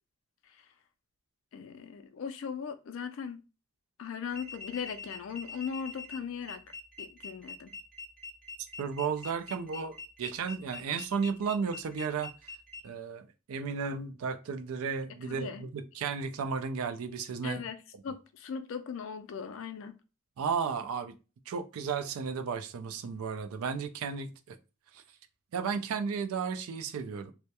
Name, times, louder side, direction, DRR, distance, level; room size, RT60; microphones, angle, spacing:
voice 1, 1.5-3.4 4.0-6.6 7.0-7.7 15.3-15.6 17.4-17.8 18.0-20.0, left 6 dB, 60° left, 0.3 m, -38 dB
sound 1, 4.3-12.8, left 3 dB, 5° left, 0.6 m, -44 dB
voice 2, 8.8-12.3 12.8-17.7 20.4-21.1 21.5-24.6 24.9-25.0 25.5-27.3, right 5 dB, 80° right, 0.4 m, -34 dB
2.2 x 2.1 x 2.7 m
head